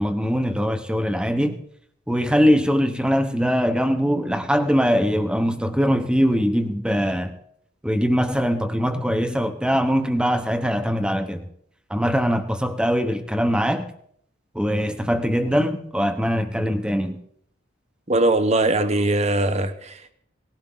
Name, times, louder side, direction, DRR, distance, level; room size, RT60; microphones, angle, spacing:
voice 1, 0.0-1.6 2.1-7.3 7.8-11.5 11.9-13.9 14.5-17.2, equal, 5° right, 1.0 m, -22 dB
voice 2, 18.1-20.1, right 2 dB, 35° right, 1.0 m, -21 dB
19.0 x 15.5 x 3.9 m
head